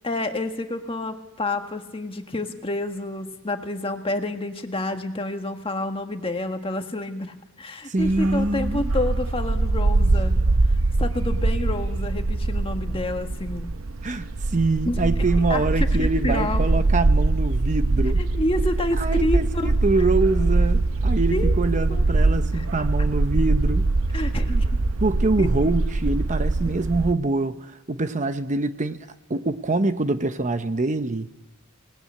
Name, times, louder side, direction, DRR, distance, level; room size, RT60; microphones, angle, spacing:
voice 1, 0.0-10.3 11.0-13.7 14.8-15.0 15.5-16.6 18.2-19.7 21.3-21.6 21.9-22.0 22.5-22.7 24.1-24.8 25.4-25.5 26.6-26.7, left 2 dB, 25° left, 5 dB, 1.6 m, -29 dB
voice 2, 7.9-8.9 14.0-18.2 19.0-24.3 25.0-31.3, right 3 dB, 35° right, 10 dB, 0.8 m, -25 dB
Bark, 8.0-27.1, right 2 dB, 75° right, 0.8 m, -23 dB
26.5 x 19.5 x 8.5 m, 1.1 s
head